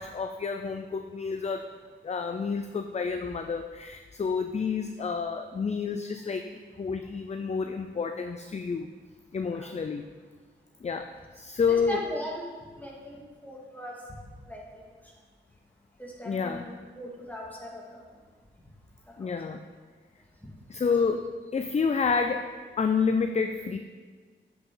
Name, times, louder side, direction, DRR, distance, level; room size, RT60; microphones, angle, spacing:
voice 1, 0.0-1.7 2.0-6.5 6.8-8.9 9.3-10.0 10.8-12.0 16.3-16.6 19.2-19.6 20.7-22.5 22.8-23.8, left 5 dB, 35° left, 7 dB, 0.4 m, -29 dB
voice 2, 11.6-12.4 12.7-14.0 14.5-14.9 16.0-17.8 19.1-19.3, equal, 10° left, -3 dB, 2.0 m, -39 dB
9.4 x 5.7 x 3.8 m, 1.5 s
cardioid pair, 70°, 20 cm